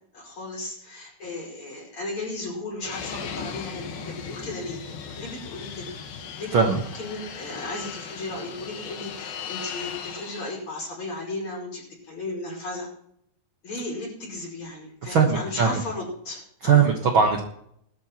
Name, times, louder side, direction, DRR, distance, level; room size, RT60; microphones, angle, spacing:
voice 1, 0.1-4.8 5.2-5.9 6.4-12.9 13.6-16.9, left 2 dB, 35° left, -2 dB, 6.0 m, -35 dB
Fixed-wing aircraft airplane, 2.8-10.6, left 6 dB, 80° left, 3.2 m, -37 dB
voice 2, 6.5-6.8 15.1-15.8 16.6-17.4, right 6 dB, 75° right, 2 dB, 1.1 m, -20 dB
21.5 x 13.0 x 3.0 m, 0.71 s
omnidirectional pair, 4.2 m